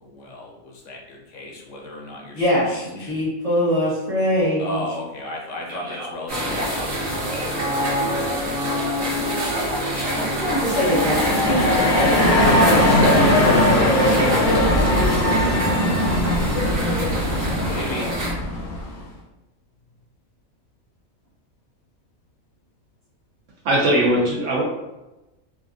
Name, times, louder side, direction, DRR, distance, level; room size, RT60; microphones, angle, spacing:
voice 1, 0.0-3.1 4.6-7.3 17.7-18.1, left 1 dB, 70° left, -1 dB, 1.0 m, -35 dB
voice 2, 2.3-4.8 5.8-6.1 7.3-7.5 10.1-15.3, equal, 30° right, -8 dB, 1.2 m, -24 dB
sound 1, 6.3-18.3, equal, 85° right, 1.4 m, -26 dB
sound 2, 10.3-19.0, left 1 dB, 45° left, 0.8 m, -20 dB
voice 3, 23.6-24.6, right 1 dB, 70° right, -2 dB, 1.0 m, -19 dB
3.3 x 2.4 x 2.5 m, 1.0 s
omnidirectional pair, 1.4 m